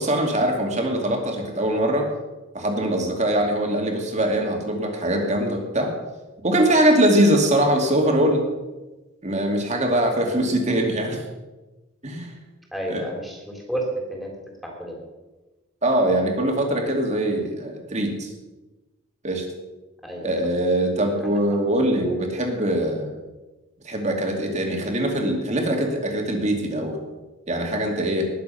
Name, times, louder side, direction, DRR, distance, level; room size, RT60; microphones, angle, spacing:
voice 1, 0.0-2.1 2.5-5.9 6.4-8.4 9.2-11.2 12.0-12.3 12.9-13.0 15.8-18.3 19.2-19.4 20.2-23.2 23.8-27.0 27.5-28.3, right 1 dB, 35° right, 2 dB, 2.5 m, -22 dB
voice 2, 12.7-14.3 14.6-15.0 20.0-20.3 21.2-21.3, right 1 dB, ahead, -1 dB, 3.4 m, -31 dB
19.5 x 7.6 x 5.7 m, 1.1 s
head